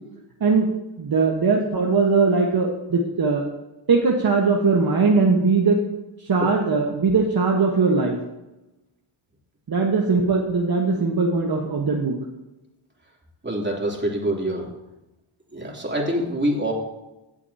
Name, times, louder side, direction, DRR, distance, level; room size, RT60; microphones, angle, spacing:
voice 1, 1.0-3.5 3.9-5.8 6.3-8.2 9.7-12.2, right 4 dB, 45° right, 0 dB, 1.5 m, -20 dB
voice 2, 13.4-14.7 15.5-16.7, right 1 dB, 20° right, -1 dB, 3.2 m, -25 dB
16.5 x 8.1 x 2.9 m, 0.99 s
cardioid pair, 75°, 50 cm